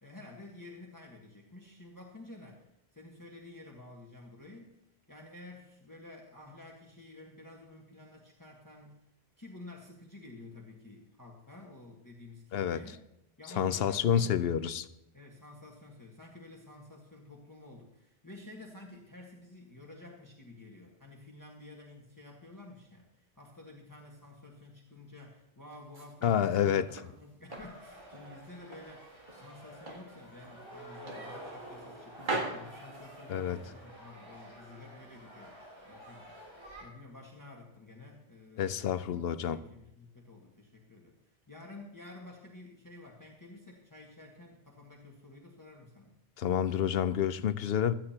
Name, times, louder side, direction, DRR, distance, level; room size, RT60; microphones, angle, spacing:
voice 1, 0.0-4.8 5.1-9.0 9.4-13.0 13.4-14.5 15.1-36.5 36.8-39.2 39.5-46.1, left 2 dB, 20° left, 1.5 m, -51 dB
voice 2, 13.6-14.9 26.2-26.9 33.3-33.6 38.6-39.6 46.4-47.9, left 9 dB, 70° left, 0.8 m, -28 dB
sound 1, 25.7-27.1 27.5-28.9 29.3-30.1 30.4-30.6 31.1-31.9 32.2-33.6, right 2 dB, 50° right, 2.0 m, -40 dB
sound 2, 27.5-36.8, right 1 dB, 70° right, 4.4 m, -50 dB
16.5 x 13.5 x 2.9 m
omnidirectional pair, 1.1 m